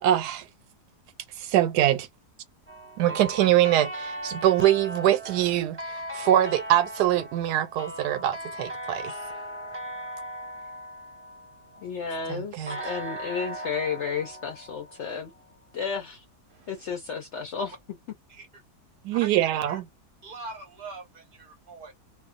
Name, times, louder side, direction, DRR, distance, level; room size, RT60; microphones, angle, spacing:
voice 1, 0.0-0.5 1.4-2.1 3.0-9.1 12.3-12.8 19.0-19.9, right 12 dB, 85° right, 1.2 m, -23 dB
sound 1, 2.7-11.9 12.7-15.5, equal, 10° right, 0.6 m, -38 dB
voice 2, 11.8-15.3 15.7-16.2 16.7-17.7, left 6 dB, 70° left, 0.6 m, -32 dB
voice 3, 16.5-16.9 18.3-18.6 19.1-19.8 20.2-21.9, right 3 dB, 50° right, 0.7 m, -43 dB
2.5 x 2.3 x 2.4 m
omnidirectional pair, 1.7 m